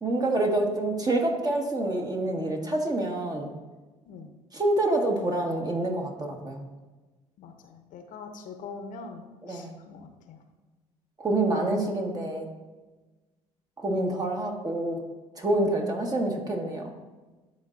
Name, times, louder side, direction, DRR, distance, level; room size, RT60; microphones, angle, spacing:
voice 1, 0.0-3.5 4.5-6.6 9.4-9.8 11.2-12.5 13.8-15.0 15.4-16.8, right 2 dB, 25° right, 1 dB, 1.5 m, -27 dB
voice 2, 7.4-10.4, left 4 dB, 65° left, 5 dB, 0.9 m, -43 dB
10.5 x 3.9 x 2.6 m, 1.2 s
hypercardioid pair, 60°, 14 cm